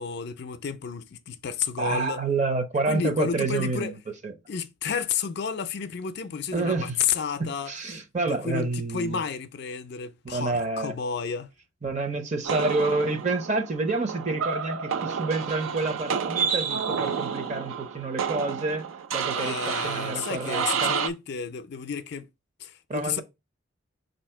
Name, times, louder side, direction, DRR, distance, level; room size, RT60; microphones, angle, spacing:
voice 1, 0.0-2.2 2.9-3.9 4.5-7.7 8.3-11.5 19.4-22.3 22.6-23.2, left 6 dB, 55° left, 0.4 m, -31 dB
voice 2, 1.8-4.0 4.2-4.3 6.5-7.0 7.7-9.2 10.2-10.9 11.8-18.9 19.1-21.0 22.9-23.2, right 3 dB, 35° right, 0.7 m, -28 dB
sound 1, 12.4-21.1, right 6 dB, 80° right, 0.5 m, -30 dB
4.1 x 2.7 x 4.4 m
head